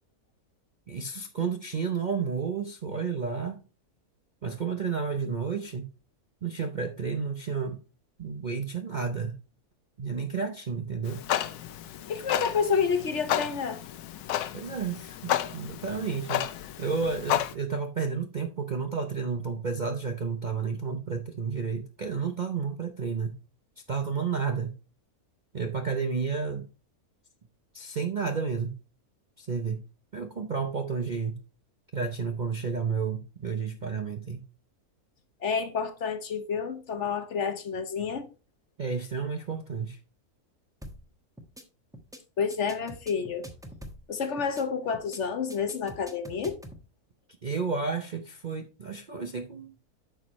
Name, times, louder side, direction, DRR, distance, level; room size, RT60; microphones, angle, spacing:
voice 1, 0.9-3.6 4.4-5.9 6.4-7.8 8.2-9.4 10.0-11.2 14.5-16.5 16.8-23.3 23.9-24.7 25.5-26.7 27.7-28.8 29.4-29.8 30.1-31.4 31.9-34.4 38.8-40.0 47.4-49.7, right 5 dB, 45° right, 0.6 m, -31 dB
Clock, 11.0-17.5, left 12 dB, 85° left, 1.2 m, -32 dB
voice 2, 12.1-13.8 35.4-38.3 42.4-43.5 44.1-46.6, left 6 dB, 55° left, 1.0 m, -29 dB
sound 1, 40.8-41.1 41.4-41.6 41.9-42.2 42.5-44.1 44.4-44.6 44.9-45.2 45.5-46.8, equal, 5° right, 0.8 m, -44 dB
9.1 x 6.3 x 3.0 m
omnidirectional pair, 1.6 m